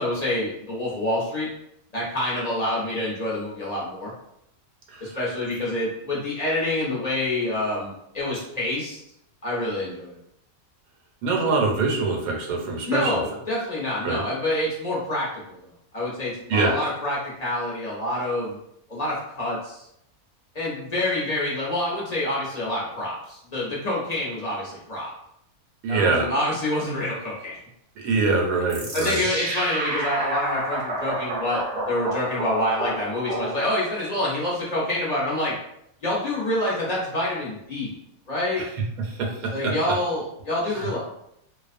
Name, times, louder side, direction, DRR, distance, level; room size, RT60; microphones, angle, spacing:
voice 1, 0.0-1.5 1.9-4.1 5.0-9.0 9.4-10.2 12.9-15.6 15.9-18.6 18.9-19.8 20.5-25.1 25.9-27.6 28.9-35.6 36.0-38.0 38.3-38.6 39.5-41.0, left 1 dB, 45° left, -6 dB, 0.5 m, -27 dB
voice 2, 11.2-13.2 14.0-14.2 16.5-16.9 25.8-26.3 28.0-29.3 38.6-38.7 39.0-39.7 40.7-40.9, right 3 dB, 85° right, 0 dB, 1.0 m, -24 dB
sound 1, 28.7-34.0, right 2 dB, 55° right, 0.4 m, -30 dB
2.4 x 2.2 x 2.4 m, 0.76 s
omnidirectional pair, 1.5 m